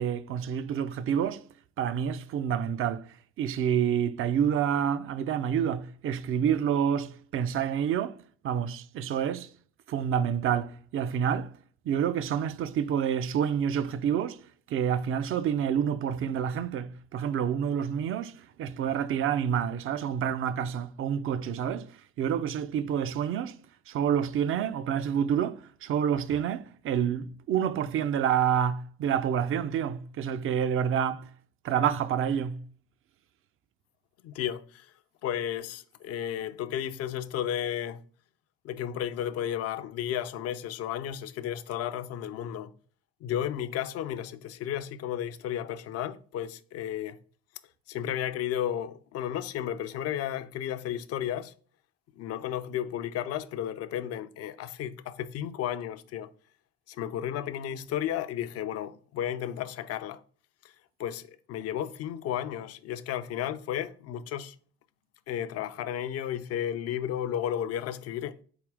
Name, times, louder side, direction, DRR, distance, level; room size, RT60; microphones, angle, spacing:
voice 1, 0.0-1.4 1.8-3.0 3.4-8.2 8.4-9.5 9.9-11.5 11.9-14.4 14.7-18.3 18.6-21.9 22.2-23.6 23.9-31.3 31.6-32.6, right 8 dB, 45° right, 0.4 m, -28 dB
voice 2, 34.2-34.9 35.2-38.0 38.6-42.7 43.2-47.2 47.9-51.5 52.2-56.3 56.9-60.2 61.0-64.5 65.3-68.4, left 10 dB, 50° left, 0.5 m, -33 dB
4.2 x 3.6 x 3.4 m
hypercardioid pair, 50°, 32 cm